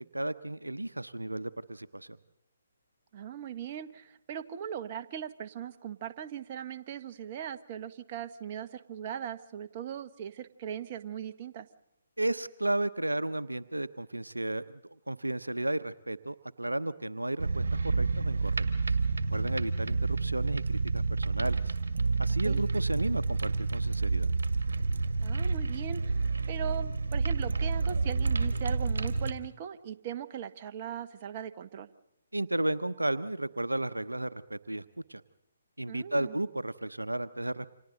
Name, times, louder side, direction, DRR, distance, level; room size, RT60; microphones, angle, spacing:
voice 1, 0.1-2.2 12.2-14.8 15.1-19.0 19.3-21.7 22.2-24.3 32.3-34.8 35.1-35.2 35.8-37.7, right 1 dB, 90° right, 14 dB, 0.9 m, -33 dB
voice 2, 3.1-11.7 22.4-22.6 25.2-31.9 35.9-36.4, right 9 dB, 35° right, 8 dB, 1.3 m, -39 dB
sound 1, 17.4-29.3, right 4 dB, 65° right, 1.9 m, -29 dB
29.5 x 26.5 x 4.0 m, 0.83 s
figure-of-eight pair, 140°, 0 cm